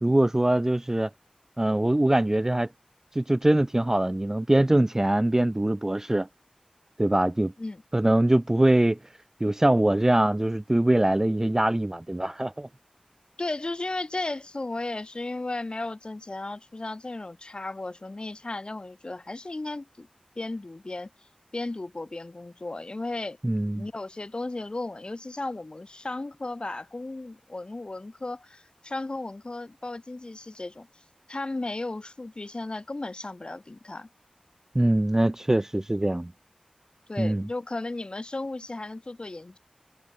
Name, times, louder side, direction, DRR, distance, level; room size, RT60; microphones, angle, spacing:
voice 1, 0.0-1.1 1.6-2.7 3.2-6.3 7.0-7.5 7.9-9.0 9.4-12.7 23.4-23.8 34.7-36.3 37.2-37.5, right 1 dB, 20° right, 0.4 m, -23 dB
voice 2, 13.4-20.1 20.4-21.1 21.5-23.4 23.7-30.9 31.3-34.1 37.1-39.6, left 2 dB, 40° left, 3.0 m, -35 dB
wide cardioid pair, 75°, 2 cm